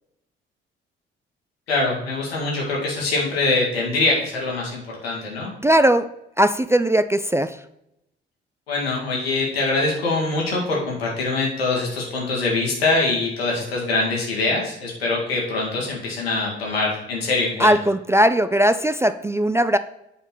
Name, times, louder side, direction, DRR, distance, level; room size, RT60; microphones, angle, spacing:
voice 1, 1.7-5.5 8.7-17.7, left 3 dB, 85° left, -2 dB, 1.8 m, -23 dB
voice 2, 5.6-6.1 6.4-7.6 17.6-19.8, right 1 dB, 10° right, 11 dB, 0.3 m, -18 dB
7.9 x 4.2 x 5.8 m, 0.84 s
figure-of-eight pair, 45°, 30 cm